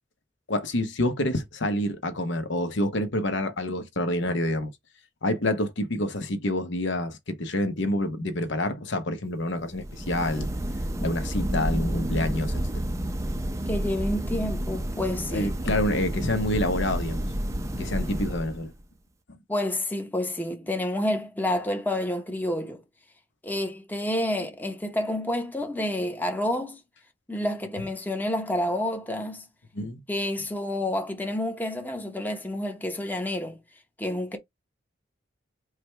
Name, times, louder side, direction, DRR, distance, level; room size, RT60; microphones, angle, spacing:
voice 1, 0.5-4.7 5.2-10.5 11.0-12.6 15.3-17.2 17.7-18.7 29.7-30.0, left 1 dB, 65° left, 0.9 m, -27 dB
sound 1, 9.7-18.8, right 1 dB, 15° right, 0.5 m, -30 dB
voice 2, 13.7-15.5 19.5-22.8 23.4-26.8 27.3-29.4 30.1-33.6 34.0-34.4, left 1 dB, 10° left, 0.8 m, -29 dB
4.8 x 2.3 x 4.4 m
head